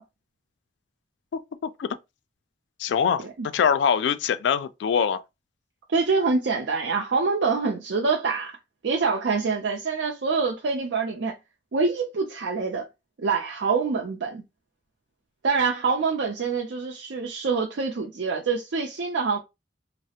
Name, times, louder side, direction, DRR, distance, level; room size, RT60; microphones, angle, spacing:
voice 1, 2.8-5.2, left 7 dB, 80° left, 0.3 m, -23 dB
voice 2, 5.9-8.6 8.8-11.3 11.7-12.9 13.2-14.4 15.4-19.4, right 4 dB, 80° right, 0.5 m, -25 dB
3.2 x 2.0 x 2.7 m
head